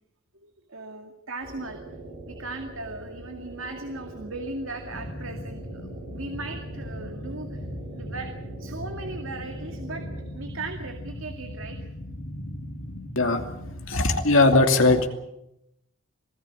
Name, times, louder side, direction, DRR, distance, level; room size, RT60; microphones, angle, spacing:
voice 1, 0.3-1.8 2.3-7.7 7.9-8.3 8.6-11.9, right 2 dB, 70° right, 5 dB, 2.2 m, -38 dB
sound 1, 1.4-10.3, right 2 dB, 90° right, 5.3 m, -43 dB
sound 2, 4.9-13.9, equal, 40° left, 2.9 m, -38 dB
voice 2, 13.9-15.1, left 2 dB, 70° left, 4 dB, 2.8 m, -19 dB
26.0 x 16.5 x 8.6 m, 0.83 s
head